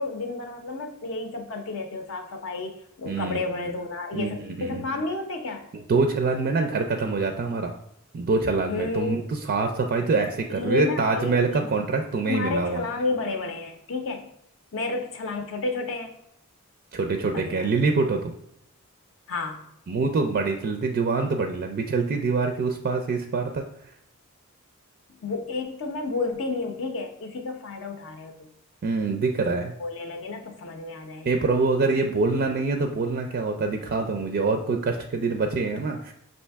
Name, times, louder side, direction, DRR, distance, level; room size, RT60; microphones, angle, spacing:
voice 1, 0.0-5.7 8.7-9.3 10.5-11.7 12.3-14.3 14.7-16.2 17.3-17.7 19.3-19.7 25.2-28.5 29.5-31.3, left 3 dB, 65° left, 4 dB, 0.6 m, -31 dB
voice 2, 3.1-3.4 4.1-4.8 5.9-7.7 8.1-9.2 9.5-12.8 16.9-18.3 19.9-23.7 28.8-29.7 31.2-36.1, right 4 dB, 45° right, 5 dB, 0.4 m, -25 dB
5.4 x 2.6 x 3.4 m, 0.74 s
head